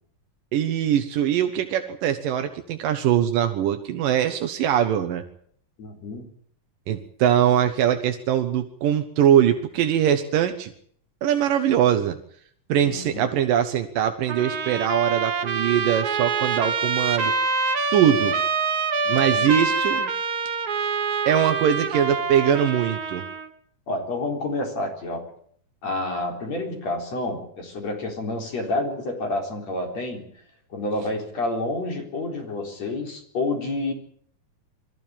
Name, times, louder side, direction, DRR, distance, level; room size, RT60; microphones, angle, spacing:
voice 1, 0.5-5.2 6.9-10.7 11.2-12.2 12.7-17.3 17.9-18.4 19.1-20.1 21.3-23.2, right 10 dB, 85° right, 6 dB, 2.9 m, -22 dB
voice 2, 5.8-6.3 12.8-13.3 19.1-19.5 23.9-25.2 25.8-30.3 30.7-33.9, left 2 dB, 55° left, 2 dB, 5.2 m, -29 dB
Trumpet, 14.3-23.5, right 4 dB, 50° right, 1.1 m, -25 dB
24.0 x 14.0 x 8.9 m, 0.62 s
omnidirectional pair, 3.8 m